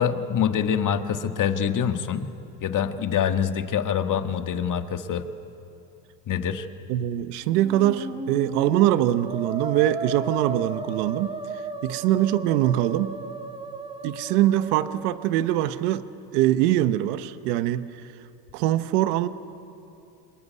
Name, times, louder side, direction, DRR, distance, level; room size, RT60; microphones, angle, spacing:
voice 1, 0.0-2.3 2.6-5.3 6.3-6.7, left 8 dB, 45° left, 8 dB, 1.7 m, -25 dB
voice 2, 6.9-13.2 14.0-16.1 16.3-17.9 18.5-19.3, right 13 dB, 85° right, 12 dB, 1.0 m, -23 dB
Musical instrument, 7.4-15.5, right 3 dB, 10° right, 1.8 m, -35 dB
25.5 x 21.5 x 9.5 m, 2.6 s
supercardioid pair, 100°, 45 cm